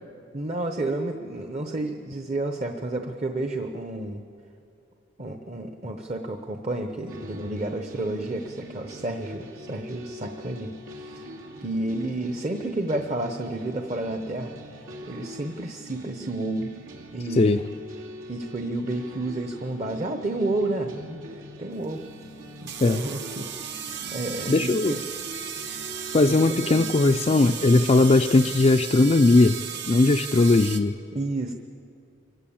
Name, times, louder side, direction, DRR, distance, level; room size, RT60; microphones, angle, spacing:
voice 1, 0.3-4.2 5.2-11.2 11.6-16.7 17.1-17.6 18.3-21.2 21.6-22.0 22.6-23.5 24.1-25.0 26.3-26.8 31.1-31.5, right 2 dB, 35° right, 5 dB, 0.9 m, -31 dB
sound 1, 7.1-26.6, equal, 90° right, 3.1 m, -43 dB
sound 2, 21.8-21.9 22.6-30.8, right 8 dB, 60° right, 1.4 m, -35 dB
voice 2, 24.5-25.0 26.1-29.6 29.9-31.0, left 2 dB, 30° left, 5 dB, 0.4 m, -19 dB
24.0 x 16.0 x 8.6 m, 2.7 s
head